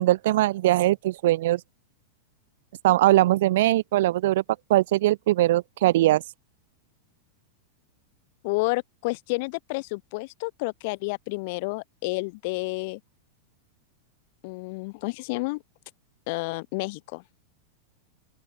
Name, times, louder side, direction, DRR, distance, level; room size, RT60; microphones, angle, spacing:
voice 1, 0.0-1.6 2.8-4.4 4.7-6.2, right 15 dB, 55° right, 0.8 m, -21 dB
voice 2, 8.4-13.0 14.4-15.6 16.3-17.2, left 27 dB, 50° left, 1.4 m, -30 dB
open air
figure-of-eight pair, 90°, 0 cm